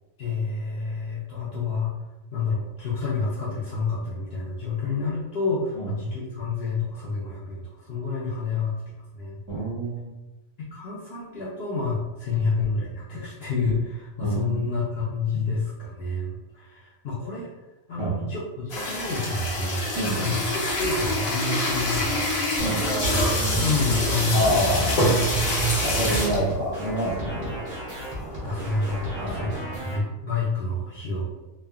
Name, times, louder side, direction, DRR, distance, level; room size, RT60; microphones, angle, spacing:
voice 1, 0.2-1.9 2.3-8.8 9.1-9.4 10.7-17.5 17.9-19.9 20.2-20.4 20.7-23.1 23.6-24.7 28.4-31.3, left 4 dB, 60° left, -7 dB, 0.6 m, -29 dB
voice 2, 9.5-10.1 14.2-14.6 18.0-18.1 19.9-20.4 22.6-22.8 24.3-25.1 25.8-27.5 29.2-29.9, right 1 dB, 30° right, -7 dB, 0.4 m, -27 dB
sound 1, 18.7-26.5 27.1-27.2 27.4-27.6 28.1-29.4, equal, 80° left, 1.2 m, -25 dB
sound 2, 22.6-30.0, right 1 dB, 60° right, 1.2 m, -35 dB
3.2 x 2.1 x 2.2 m, 1.0 s
omnidirectional pair, 1.5 m